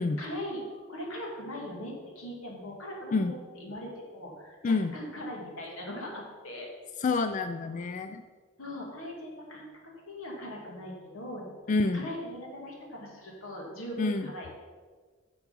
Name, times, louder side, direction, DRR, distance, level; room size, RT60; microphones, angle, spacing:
voice 1, 0.2-6.7 7.6-7.8 8.6-9.7 10.1-14.5, left 1 dB, 85° left, -1 dB, 2.4 m, -40 dB
voice 2, 4.6-4.9 7.0-8.2 11.7-12.1 14.0-14.3, left 3 dB, 35° left, 10 dB, 0.3 m, -28 dB
9.2 x 6.9 x 5.3 m, 1.5 s
head